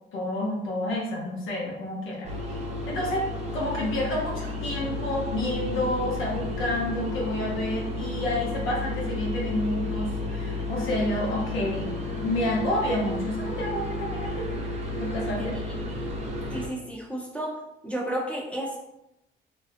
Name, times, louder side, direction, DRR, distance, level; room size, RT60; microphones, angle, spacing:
voice 1, 0.1-2.3 2.9-11.9 12.2-14.5 15.0-15.6, left 1 dB, 85° left, -3 dB, 0.8 m, -29 dB
sound 1, 2.2-16.7, left 2 dB, 35° right, 0.6 m, -32 dB
voice 2, 15.4-15.7 16.5-17.5 17.8-18.8, right 1 dB, 5° left, -3 dB, 0.8 m, -32 dB
2.6 x 2.0 x 2.6 m, 0.87 s
cardioid pair, 90°, 20 cm